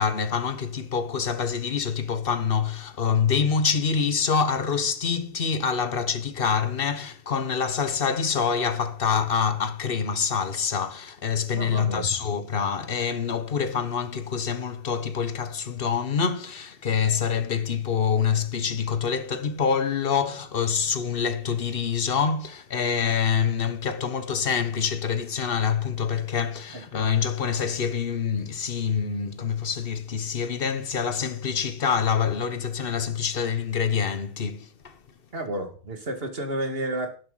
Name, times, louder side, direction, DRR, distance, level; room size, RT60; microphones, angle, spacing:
voice 1, 0.0-34.9, left 6 dB, 55° left, 0.6 m, -26 dB
voice 2, 11.5-12.1 26.7-26.9 35.3-37.2, right 1 dB, 25° right, 2.2 m, -31 dB
12.0 x 10.0 x 4.0 m
omnidirectional pair, 2.4 m